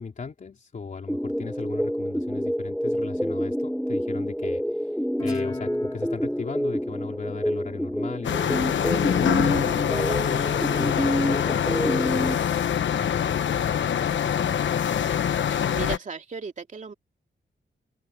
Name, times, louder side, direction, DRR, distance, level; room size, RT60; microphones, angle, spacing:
voice 1, 0.0-9.1 9.9-15.1, left 5 dB, 40° left, 3.5 m, -37 dB
sound 1, 1.1-12.3, equal, ahead, 1.1 m, -28 dB
Guitar, 5.2-8.4, left 3 dB, 20° left, 2.8 m, -38 dB
sound 2, 8.2-16.0, left 9 dB, 80° left, 1.0 m, -24 dB
voice 2, 15.4-16.9, right 5 dB, 40° right, 2.8 m, -36 dB
wide cardioid pair, 165°, 19 cm